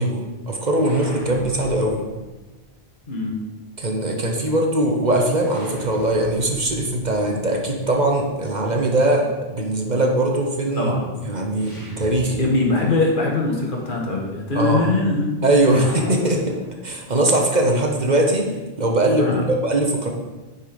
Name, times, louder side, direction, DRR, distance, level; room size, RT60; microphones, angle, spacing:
voice 1, 0.0-2.0 3.8-10.9 11.2-12.4 14.5-14.9 15.4-16.5 16.8-18.5 18.8-20.1, right 1 dB, 45° right, 1 dB, 1.2 m, -21 dB
sound 1, 0.7-2.7 5.4-8.4 11.5-13.0 13.2-13.3 15.6-17.4, equal, 30° left, 2.9 m, -40 dB
voice 2, 10.8-11.1 12.4-15.8 19.2-19.4, left 3 dB, 55° left, -1 dB, 1.8 m, -22 dB
9.3 x 5.5 x 5.1 m, 1.2 s
omnidirectional pair, 1.1 m